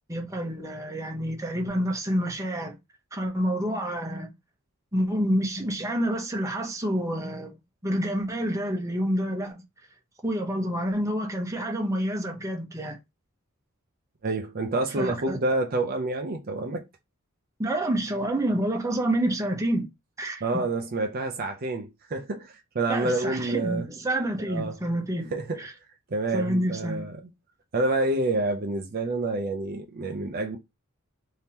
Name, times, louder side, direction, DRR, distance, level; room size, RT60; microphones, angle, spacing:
voice 1, 0.1-2.8 3.1-4.3 4.9-7.5 7.8-9.6 10.2-13.0 15.0-15.4 17.6-19.9 20.2-20.4 22.9-25.3 25.6-25.7 26.3-27.1, right 1 dB, 15° right, 0.9 m, -28 dB
voice 2, 14.2-16.8 20.4-23.9 24.5-24.8 25.3-25.6 26.1-27.2 27.7-30.6, right 2 dB, 45° right, 0.6 m, -28 dB
3.5 x 2.8 x 2.9 m
head